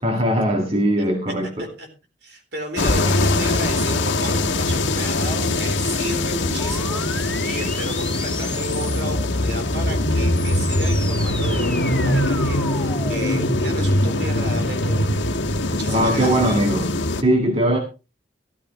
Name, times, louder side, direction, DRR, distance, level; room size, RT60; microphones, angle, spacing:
voice 1, 0.0-1.7 15.9-17.8, right 1 dB, 30° right, 2 dB, 1.8 m, -20 dB
voice 2, 2.2-15.1 15.6-16.6, right 1 dB, 60° right, 5 dB, 4.0 m, -33 dB
sound 1, 2.8-17.2, left 1 dB, 85° left, 1.4 m, -22 dB
sound 2, 6.6-9.2 10.1-16.1, left 2 dB, 5° left, 1.3 m, -34 dB
14.0 x 14.0 x 3.2 m, 0.30 s
head